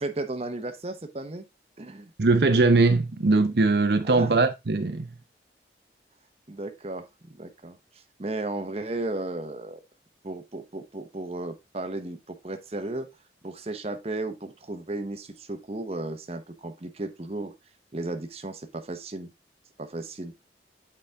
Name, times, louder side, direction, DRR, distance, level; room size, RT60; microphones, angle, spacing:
voice 1, 0.0-1.4 1.8-2.1 4.0-4.4 6.5-9.8 10.2-13.1 13.4-17.5 17.9-19.3 19.8-20.3, right 2 dB, 35° right, 0.9 m, -34 dB
voice 2, 2.2-5.1, right 3 dB, 60° right, 0.7 m, -21 dB
8.1 x 5.0 x 3.5 m
head